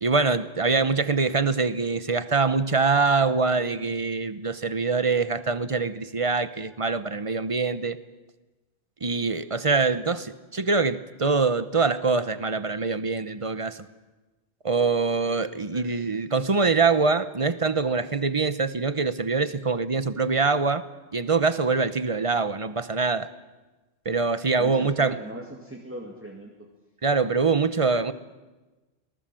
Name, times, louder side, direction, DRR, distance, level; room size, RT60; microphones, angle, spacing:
voice 1, 0.0-8.0 9.0-13.9 14.6-20.8 21.1-23.3 24.0-25.2 27.0-28.1, right 4 dB, 30° right, 14 dB, 0.9 m, -24 dB
voice 2, 15.7-16.0 24.6-26.7, right 1 dB, 10° right, 1 dB, 2.2 m, -39 dB
26.0 x 19.0 x 7.7 m, 1.2 s
omnidirectional pair, 1.2 m